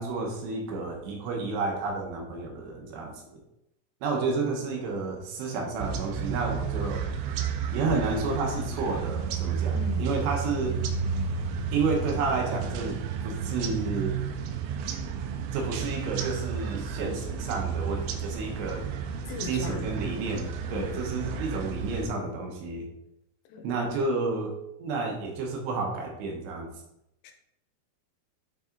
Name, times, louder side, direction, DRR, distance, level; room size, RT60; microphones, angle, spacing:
voice 1, 0.0-3.1 4.0-7.0 7.7-10.8 11.7-14.1 15.5-18.8 19.4-22.9 23.6-24.5 24.8-26.7, right 4 dB, 75° right, 1 dB, 2.8 m, -31 dB
sound 1, 5.8-22.1, right 6 dB, 90° right, 3.3 m, -32 dB
voice 2, 9.7-10.1 19.3-19.9 20.6-20.9 23.5-23.7 27.2-27.3, left 6 dB, 90° left, 4 dB, 3.3 m, -39 dB
9.1 x 4.1 x 3.8 m, 0.83 s
omnidirectional pair, 5.8 m